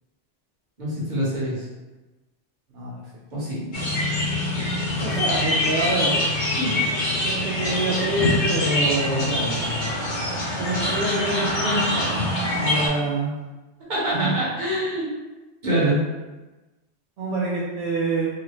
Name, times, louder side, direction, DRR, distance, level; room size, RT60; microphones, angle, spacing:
voice 1, 0.8-1.6 3.3-3.7 6.6-6.7 13.9-15.1 15.6-16.0, right 1 dB, 40° right, -8 dB, 1.2 m, -25 dB
sound 1, 3.7-12.9, left 1 dB, 50° left, 0.8 m, -24 dB
voice 2, 5.0-6.2 7.2-9.9 10.6-12.3 12.5-13.3 14.1-14.4 17.2-18.3, right 2 dB, 70° right, -6 dB, 0.8 m, -26 dB
3.2 x 2.5 x 3.0 m, 1.1 s
omnidirectional pair, 1.2 m